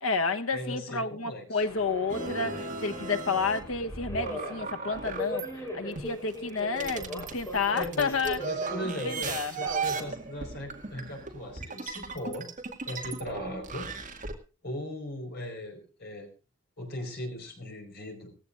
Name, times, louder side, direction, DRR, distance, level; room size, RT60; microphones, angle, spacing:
voice 1, 0.0-8.4 8.8-9.5, left 4 dB, 90° left, 1.1 m, -30 dB
voice 2, 0.5-1.6 7.7-12.5 12.8-13.9 14.6-16.3 16.8-18.3, left 1 dB, 50° left, 4.9 m, -38 dB
Subway metro underground, 1.6-11.3, equal, 15° left, 4.4 m, -40 dB
sound 1, 2.1-5.5 6.0-14.3, right 4 dB, 40° right, 2.1 m, -37 dB
18.5 x 15.5 x 2.6 m
head